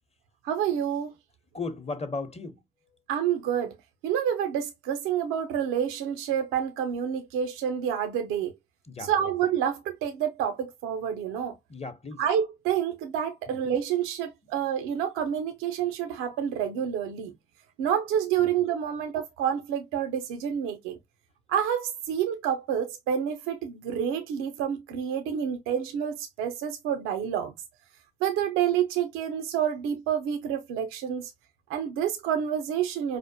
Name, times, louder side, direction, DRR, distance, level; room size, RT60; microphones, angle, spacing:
voice 1, 0.4-1.1 3.1-3.7 4.0-8.5 9.0-11.5 12.2-17.3 17.8-21.0 21.5-27.5 28.2-31.3 31.7-33.2, right 9 dB, 90° right, 0.5 m, -28 dB
voice 2, 1.5-2.6 8.8-9.3 11.7-12.2 13.5-13.6 14.4-14.5 18.4-18.5, left 3 dB, 30° left, 0.8 m, -36 dB
4.9 x 2.1 x 2.7 m
supercardioid pair, 45°, 21 cm